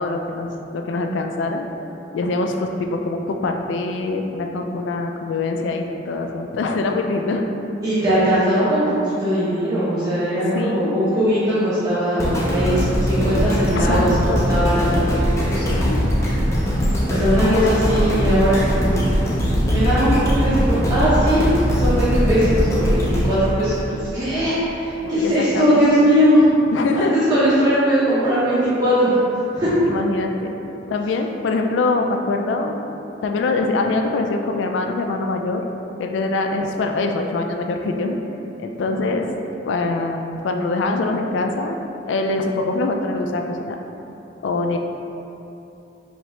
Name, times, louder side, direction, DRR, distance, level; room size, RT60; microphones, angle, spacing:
voice 1, 0.0-1.7 2.1-7.5 10.5-11.3 13.7-14.6 15.7-16.1 17.4-17.7 25.0-25.8 26.7-27.2 29.8-30.5 30.9-32.8 33.2-35.6 36.0-38.2 38.6-39.4 39.6-41.8 42.1-43.8 44.4-44.8, left 3 dB, 80° left, 4 dB, 0.3 m, -24 dB
voice 2, 7.8-15.6 17.1-19.1 19.6-21.5 21.8-26.5 27.0-29.2 29.5-29.7, equal, 20° right, -12 dB, 0.7 m, -20 dB
sound 1, 12.2-24.4 24.9-25.0, equal, 15° left, 0.5 m, -20 dB
3.5 x 2.9 x 3.1 m, 2.9 s
head